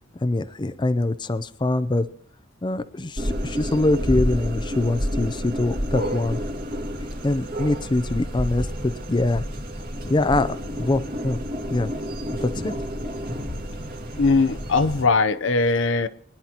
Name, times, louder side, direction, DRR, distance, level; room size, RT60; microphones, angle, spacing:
voice 1, 0.2-2.1 2.6-6.4 7.2-9.4 10.0-11.4 11.7-11.9 12.4-12.7, left 2 dB, 25° left, 0.5 m, -24 dB
sound 1, 3.2-15.0, equal, 45° right, 2.4 m, -30 dB
voice 2, 14.2-16.1, left 3 dB, 70° left, 0.7 m, -20 dB
23.5 x 11.0 x 2.9 m
head